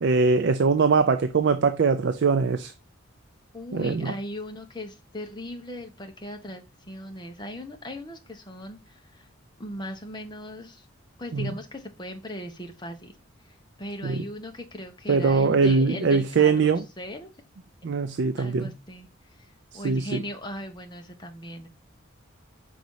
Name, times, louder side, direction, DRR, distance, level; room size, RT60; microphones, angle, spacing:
voice 1, 0.0-2.7 3.7-4.1 11.3-11.5 14.0-14.2 15.1-16.8 17.8-18.7 19.8-20.2, right 4 dB, 55° right, 0.4 m, -22 dB
voice 2, 3.5-9.3 9.6-10.9 11.2-13.1 13.8-17.3 18.4-19.1 19.4-21.7, left 1 dB, 20° left, 1.0 m, -38 dB
5.2 x 4.0 x 4.7 m
head